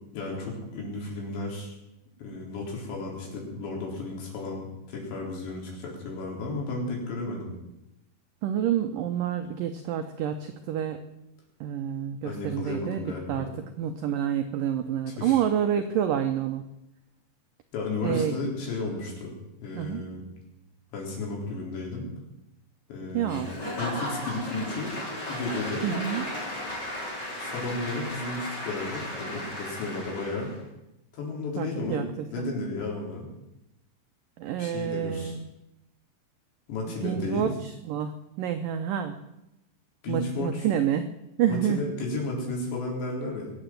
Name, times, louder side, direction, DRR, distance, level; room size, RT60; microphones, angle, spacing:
voice 1, 0.1-1.7 2.2-7.5 12.2-13.5 15.1-15.4 17.7-19.3 19.6-20.2 20.9-22.1 22.9-23.5 23.8-24.9 25.3-25.9 27.4-30.5 31.1-32.0 32.3-33.3 34.6-35.3 36.7-37.5 40.0-40.7 41.5-43.5, left 2 dB, 80° left, -1 dB, 6.4 m, -33 dB
voice 2, 8.4-11.0 11.6-13.5 13.8-16.6 18.0-18.4 19.8-20.0 23.1-23.5 25.8-26.2 31.6-32.5 34.4-35.5 37.0-38.1 38.4-39.2 40.1-41.1 41.4-41.8, right 9 dB, 90° right, 8 dB, 1.9 m, -28 dB
Applause / Crowd, 23.3-30.6, left 1 dB, 25° left, 3.8 m, -35 dB
22.5 x 8.1 x 7.7 m, 0.89 s
omnidirectional pair, 5.0 m